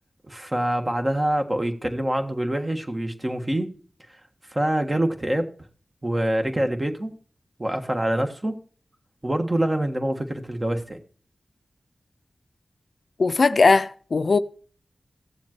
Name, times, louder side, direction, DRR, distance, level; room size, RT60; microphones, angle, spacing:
voice 1, 0.3-3.7 4.5-5.5 6.0-7.1 7.6-8.6 9.2-11.0, right 1 dB, 30° right, 1.4 m, -25 dB
voice 2, 13.2-14.4, left 4 dB, 65° left, 0.4 m, -19 dB
16.0 x 7.1 x 3.0 m
cardioid pair, 50°, 0 cm